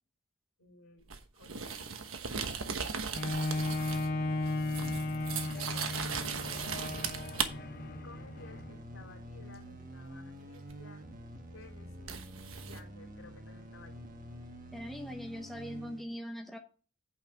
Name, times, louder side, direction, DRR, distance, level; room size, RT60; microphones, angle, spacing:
voice 1, 0.6-2.0 3.3-3.9 5.5-7.1 7.9-11.1 11.5-12.2 12.6-14.1, left 2 dB, 80° left, 2 dB, 3.1 m, -56 dB
sound 1, 1.1-4.2 4.4-7.5 10.7-10.8 12.1-12.8, right 6 dB, 80° right, 1.2 m, -37 dB
Bowed string instrument, 3.1-8.8 9.4-9.5, left 2 dB, 45° left, 0.7 m, -35 dB
sound 2, 3.5-16.0, equal, 40° right, 1.4 m, -47 dB
voice 2, 14.7-16.6, equal, ahead, 2 dB, 0.9 m, -41 dB
8.5 x 5.7 x 5.3 m, 0.36 s
head